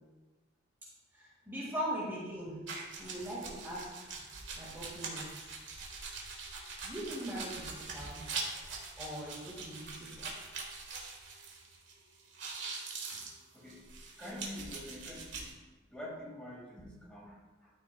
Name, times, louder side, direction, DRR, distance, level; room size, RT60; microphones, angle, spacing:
voice 1, 1.1-2.6 3.0-3.9 4.6-5.5 6.8-8.3 9.0-10.3 16.8-16.9, right 1 dB, 10° right, -6 dB, 1.8 m, -40 dB
sound 1, 2.7-11.9 12.2-15.5, right 4 dB, 65° right, 1.5 m, -43 dB
voice 2, 14.2-15.5 15.9-17.7, left 1 dB, 5° left, -5 dB, 1.9 m, -46 dB
12.5 x 6.2 x 2.3 m, 1.2 s
head